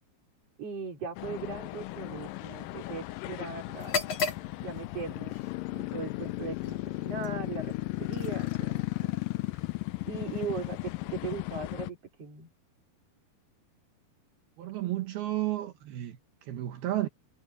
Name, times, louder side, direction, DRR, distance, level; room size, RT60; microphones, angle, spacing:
voice 1, 0.6-4.3 4.6-5.4 5.7-7.7 8.0-9.1 10.0-12.5, right 5 dB, 40° right, 5.2 m, -39 dB
sound 1, 1.2-11.9, left 20 dB, 80° left, 2.1 m, -35 dB
sound 2, 3.7-11.6, left 5 dB, 50° left, 4.6 m, -40 dB
voice 2, 14.6-17.1, right 14 dB, 75° right, 3.3 m, -32 dB
omnidirectional pair, 4.5 m